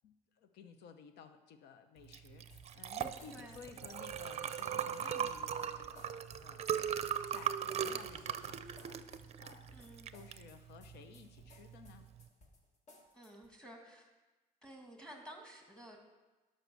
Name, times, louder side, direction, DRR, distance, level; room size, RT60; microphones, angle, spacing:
voice 1, 0.0-6.9 7.3-12.1, left 7 dB, 80° left, 8 dB, 0.8 m, -56 dB
Liquid, 2.1-12.2, right 8 dB, 40° right, 0.5 m, -39 dB
sound 1, 2.5-13.5, left 2 dB, 45° left, 1.5 m, -61 dB
voice 2, 3.3-3.6 9.7-10.1 13.1-14.1 14.6-16.0, right 1 dB, 5° left, 2 dB, 2.1 m, -53 dB
12.0 x 5.7 x 6.2 m, 1.2 s
cardioid pair, 110°, 17 cm